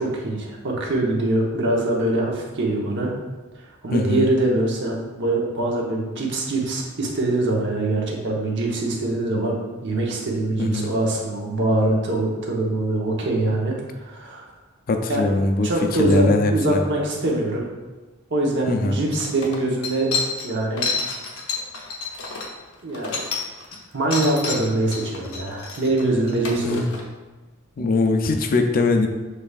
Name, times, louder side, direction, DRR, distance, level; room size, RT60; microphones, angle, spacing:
voice 1, 0.0-3.1 3.8-13.8 14.0-14.5 15.1-15.2 15.6-17.7 18.3-20.1 20.4-20.9 22.8-23.2 23.9-26.8, right 2 dB, 55° right, -1 dB, 0.9 m, -23 dB
voice 2, 3.9-4.3 10.6-10.9 14.9-16.8 18.7-19.0 26.6-26.9 27.8-29.1, left 2 dB, 40° left, 5 dB, 0.4 m, -21 dB
sound 1, 18.7-18.8 19.1-23.8 24.1-27.0, left 4 dB, 80° left, 0.8 m, -29 dB
6.7 x 3.3 x 2.4 m, 1.2 s
head